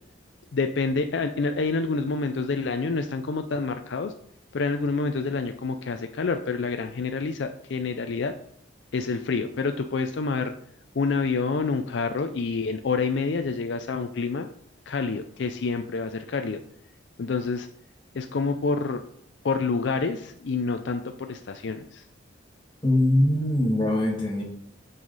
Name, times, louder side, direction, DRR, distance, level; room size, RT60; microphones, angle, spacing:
voice 1, 0.5-4.1 4.5-8.3 8.9-10.5 10.9-14.5 14.9-16.6 17.2-17.7 18.1-19.0 19.4-22.0, left 4 dB, 65° left, 7 dB, 0.4 m, -27 dB
voice 2, 22.8-24.4, left 1 dB, 25° left, -1 dB, 1.6 m, -22 dB
7.7 x 5.6 x 4.0 m, 0.67 s
head